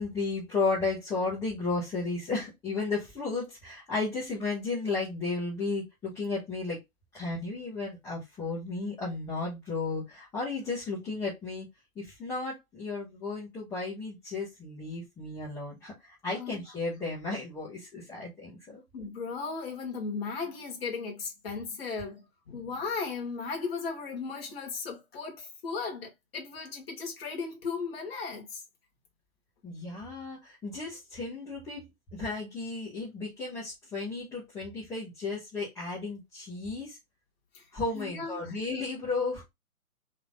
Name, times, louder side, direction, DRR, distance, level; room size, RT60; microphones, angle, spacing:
voice 1, 0.0-6.8 7.1-11.7 11.9-18.8 29.6-37.0 37.7-39.4, left 3 dB, 5° left, 1.1 m, -34 dB
voice 2, 18.9-28.6 37.5-37.6 37.9-38.6, left 4 dB, 40° left, 1.7 m, -36 dB
3.6 x 3.1 x 3.8 m
figure-of-eight pair, 145°, 45 cm